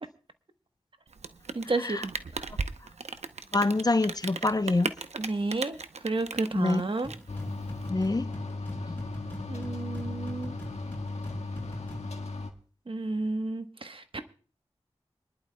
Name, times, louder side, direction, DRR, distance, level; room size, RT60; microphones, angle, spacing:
Rain, 1.1-7.9, right 4 dB, 80° right, 0.7 m, -37 dB
voice 1, 1.5-2.5 5.1-7.1 9.5-10.5 12.9-14.2, right 3 dB, 50° right, 1.1 m, -32 dB
voice 2, 3.5-4.9 6.5-6.8 7.9-8.3 8.9-9.0, left 2 dB, 35° left, 0.7 m, -26 dB
sound 1, 7.0-12.2, equal, 15° left, 5.8 m, -42 dB
sound 2, 7.3-12.5, left 3 dB, 80° left, 1.6 m, -36 dB
26.0 x 11.5 x 2.2 m
cardioid pair, 45°, 11 cm